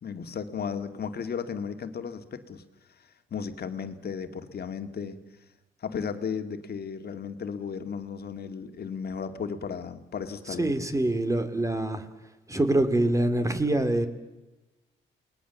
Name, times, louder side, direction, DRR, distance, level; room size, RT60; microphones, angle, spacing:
voice 1, 0.0-2.6 3.3-5.2 5.8-10.9, left 6 dB, 50° left, 8 dB, 2.3 m, -35 dB
voice 2, 10.6-12.1 12.5-14.1, right 1 dB, 15° right, 9 dB, 2.7 m, -25 dB
29.0 x 20.5 x 7.2 m, 1.1 s
cardioid pair, 90°, 20 cm